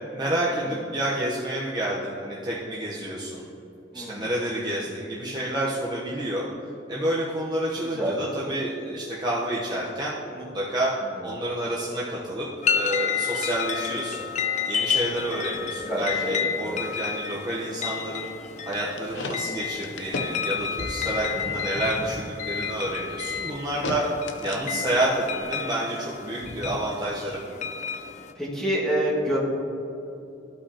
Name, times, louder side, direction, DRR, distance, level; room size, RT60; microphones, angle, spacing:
voice 1, 0.1-3.5 3.9-6.5 6.9-10.9 11.2-14.3 14.7-18.3 18.7-24.1 24.4-27.4, right 1 dB, 25° right, -6 dB, 0.9 m, -29 dB
voice 2, 3.9-4.2 7.8-8.2 11.2-11.3 15.8-16.8 21.5-21.7 28.4-29.4, equal, 5° left, -6 dB, 1.8 m, -28 dB
sound 1, 12.6-28.3, left 7 dB, 40° left, 0.4 m, -31 dB
sound 2, 18.7-25.0, left 4 dB, 75° left, 0.6 m, -34 dB
14.0 x 5.6 x 2.8 m, 2.8 s
head